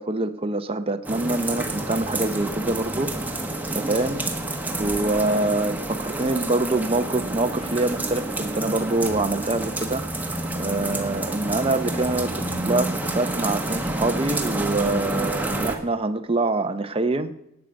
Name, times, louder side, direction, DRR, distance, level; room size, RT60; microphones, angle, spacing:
voice 1, 0.0-3.1 3.7-4.2 4.8-10.1 10.5-17.3, right 2 dB, 25° right, 8 dB, 0.7 m, -25 dB
sound 1, 1.0-15.8, right 2 dB, 10° right, 1.4 m, -29 dB
17.5 x 9.1 x 5.2 m, 0.83 s
head